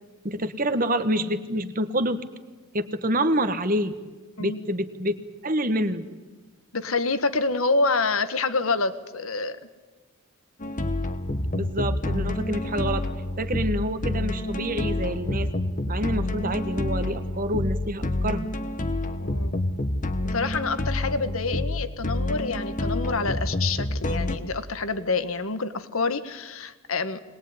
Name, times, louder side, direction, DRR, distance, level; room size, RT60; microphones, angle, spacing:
voice 1, 0.2-2.2 2.7-3.9 4.4-5.2 5.4-6.0 11.5-13.1 13.4-15.5 15.9-18.5, right 1 dB, 40° right, 11 dB, 1.4 m, -27 dB
voice 2, 6.7-9.6 19.2-19.5 20.3-27.2, left 3 dB, 80° left, 12 dB, 1.4 m, -27 dB
sound 1, 10.6-24.4, left 1 dB, 40° left, 1.1 m, -28 dB
22.0 x 20.5 x 9.6 m, 1.2 s
head